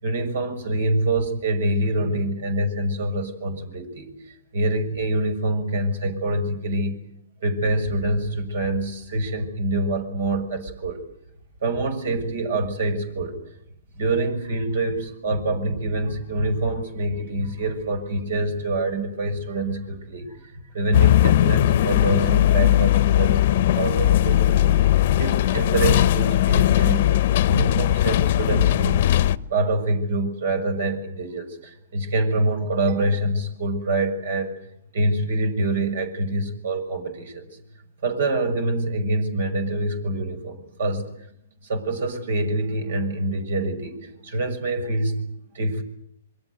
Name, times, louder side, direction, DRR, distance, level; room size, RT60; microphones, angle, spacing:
voice 1, 0.0-4.1 4.5-7.0 7.4-11.0 11.6-13.4 14.0-29.0 29.5-34.5 34.9-37.6 38.0-41.0 41.6-45.3 45.5-45.8, right 2 dB, 65° right, 10 dB, 6.5 m, -25 dB
sound 1, 20.9-29.4, left 13 dB, 55° left, 1.0 m, -19 dB
27.0 x 23.0 x 8.1 m, 0.75 s
hypercardioid pair, 135°, 0 cm